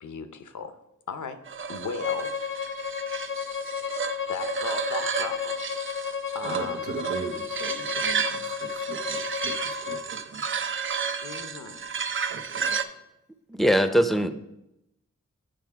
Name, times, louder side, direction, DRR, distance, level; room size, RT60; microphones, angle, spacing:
voice 1, 0.0-0.8 1.1-1.4 1.7-2.3 3.9-5.5 5.9-6.0 6.3-7.0 11.2-11.9 13.6-14.1, left 5 dB, 80° left, 10 dB, 0.7 m, -37 dB
sound 1, 1.5-12.8, right 6 dB, 45° right, 0.5 m, -32 dB
Bowed string instrument, 2.0-10.0, left 7 dB, 40° left, 0.5 m, -33 dB
voice 2, 6.4-10.5 12.3-13.0, right 4 dB, 80° right, 6 dB, 0.8 m, -39 dB
voice 3, 13.5-14.3, equal, ahead, 9 dB, 0.6 m, -21 dB
7.7 x 4.8 x 4.6 m, 0.88 s
cardioid pair, 45°, 30 cm